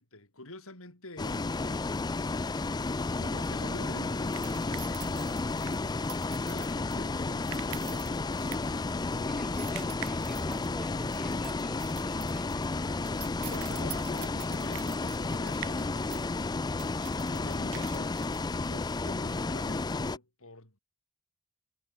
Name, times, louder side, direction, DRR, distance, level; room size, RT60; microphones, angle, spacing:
voice 1, 0.0-2.9 3.5-6.1 6.3-10.2 12.6-16.5 16.7-18.2 18.7-20.8, left 2 dB, 65° left, 7.5 m, -49 dB
Bus, 1.2-20.2, left 3 dB, 20° left, 0.4 m, -32 dB
sound 1, 2.4-19.1, right 12 dB, 65° right, 0.8 m, -47 dB
voice 2, 9.3-13.3, equal, ahead, 4.2 m, -46 dB
head